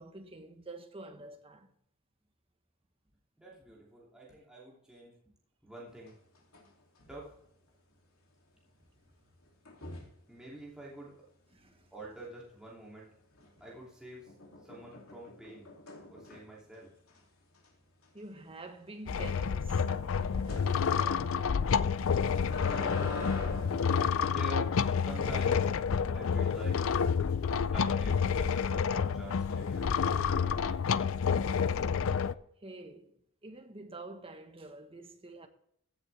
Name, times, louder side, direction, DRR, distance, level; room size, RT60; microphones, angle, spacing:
voice 1, 0.0-1.7 11.5-11.9 18.1-21.6 32.6-35.5, right 2 dB, 25° right, 1.4 m, -48 dB
voice 2, 3.4-5.1 5.6-6.2 7.1-7.3 10.3-11.1 11.9-13.1 13.6-14.3 14.6-15.7 16.1-16.9 24.0-25.7 26.1-26.8 27.5-31.1, right 1 dB, 5° right, 2.9 m, -47 dB
sound 1, 6.1-6.7 7.0-7.3 9.6-10.2 13.3-13.8 14.3-16.6 17.1-17.2 17.5-17.7 18.0-18.1 20.5-20.7 22.0-24.4 25.2-25.7, left 3 dB, 85° left, 2.9 m, -42 dB
sound 2, 19.1-32.3, left 6 dB, 70° left, 0.5 m, -29 dB
15.5 x 8.0 x 3.5 m
head